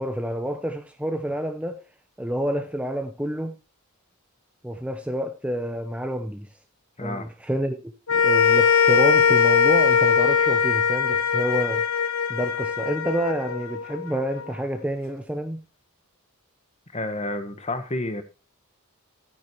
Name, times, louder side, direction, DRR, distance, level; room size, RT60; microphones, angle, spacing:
voice 1, 0.0-1.8 2.2-3.6 4.6-6.5 7.0-11.8 12.3-15.6, right 1 dB, 5° right, 0.8 m, -28 dB
voice 2, 7.0-7.3 16.9-18.2, left 2 dB, 30° left, 1.5 m, -30 dB
sound 1, 8.1-14.5, left 7 dB, 70° left, 1.1 m, -21 dB
12.5 x 9.8 x 3.1 m
head